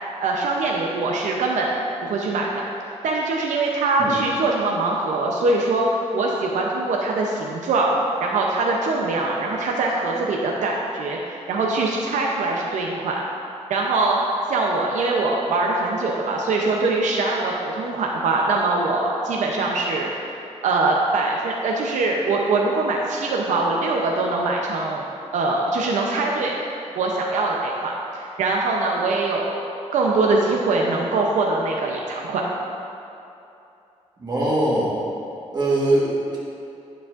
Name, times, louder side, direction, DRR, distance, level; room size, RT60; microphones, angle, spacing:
voice 1, 0.2-1.8 2.0-2.6 3.0-5.9 6.1-7.9 8.2-13.2 13.7-14.2 14.5-20.1 20.6-25.1 25.3-26.5 26.9-29.6 29.9-32.4, right 3 dB, 90° right, -1 dB, 0.6 m, -22 dB
voice 2, 34.2-35.0 35.5-36.4, right 1 dB, 35° right, -7 dB, 1.4 m, -21 dB
9.7 x 7.0 x 2.5 m, 2.7 s
wide cardioid pair, 130°, 12 cm